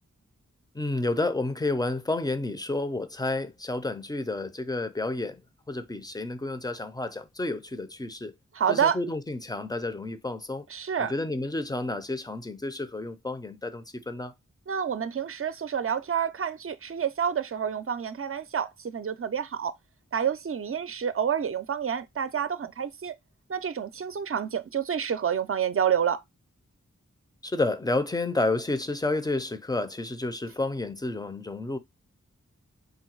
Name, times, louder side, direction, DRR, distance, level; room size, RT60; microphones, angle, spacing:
voice 1, 0.7-5.4 5.7-8.3 8.7-10.7 11.0-14.3 27.4-31.8, left 2 dB, 15° left, 0.6 m, -30 dB
voice 2, 8.5-9.0 10.7-11.1 14.7-19.7 20.1-23.1 23.5-26.2, right 8 dB, 45° right, 0.5 m, -28 dB
3.9 x 2.2 x 4.5 m
cardioid pair, 40°, 30 cm